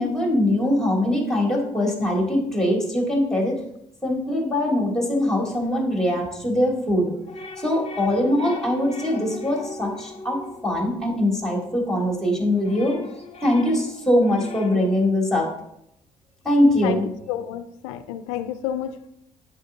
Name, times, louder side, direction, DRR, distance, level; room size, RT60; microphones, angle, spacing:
voice 1, 0.0-3.6 4.0-7.1 7.6-13.0 13.4-15.5 16.4-17.1, left 1 dB, 5° left, 0 dB, 2.7 m, -22 dB
sound 1, 7.3-11.9 12.3-15.1, left 2 dB, 35° left, 1.0 m, -39 dB
voice 2, 17.3-19.1, left 10 dB, 80° left, 10 dB, 0.4 m, -30 dB
8.1 x 6.3 x 2.7 m, 0.78 s
hypercardioid pair, 55°, 16 cm